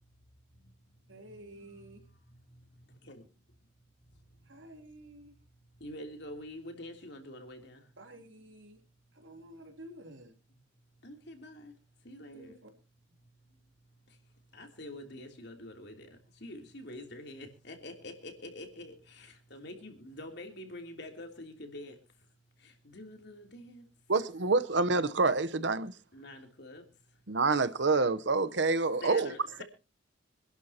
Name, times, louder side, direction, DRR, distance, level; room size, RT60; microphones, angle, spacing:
voice 1, 0.5-3.3 4.0-4.7 5.6-8.0 8.8-8.9 9.1-9.6 10.5-12.6 13.2-23.9 26.1-27.2 29.0-29.6, left 1 dB, 60° left, 3.1 m, -48 dB
voice 2, 1.1-2.0 4.4-5.3 8.0-8.8 9.1-10.3 12.3-12.7, right 1 dB, 80° right, 3.2 m, -51 dB
voice 3, 24.1-25.9 27.3-29.3, right 3 dB, 65° right, 0.9 m, -27 dB
26.0 x 11.5 x 2.9 m
head